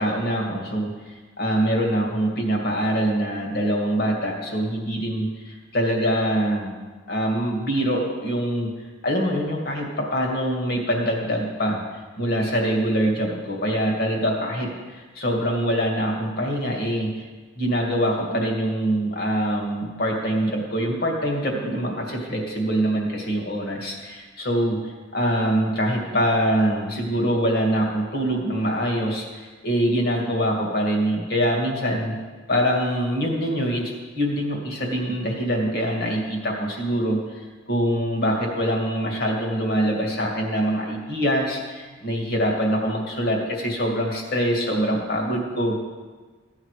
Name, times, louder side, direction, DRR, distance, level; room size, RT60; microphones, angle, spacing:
voice 1, 0.0-6.7 7.1-8.7 9.0-11.8 12.2-17.3 17.6-24.8 25.1-32.2 32.5-45.8, equal, 55° left, 0 dB, 2.2 m, -24 dB
14.5 x 8.9 x 4.9 m, 1.4 s
head